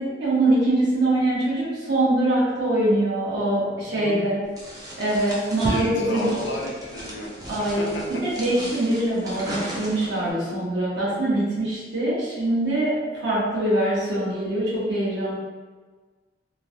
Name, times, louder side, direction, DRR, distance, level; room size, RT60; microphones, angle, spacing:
voice 1, 0.0-4.4 5.0-6.3 7.5-15.3, right 1 dB, 70° right, -8 dB, 1.1 m, -23 dB
voice 2, 3.9-4.3 5.6-7.3 7.6-8.2, left 1 dB, 90° left, -2 dB, 0.6 m, -32 dB
sound 1, 4.6-10.3, equal, 20° right, 0.6 m, -35 dB
3.0 x 2.2 x 2.6 m, 1.4 s
head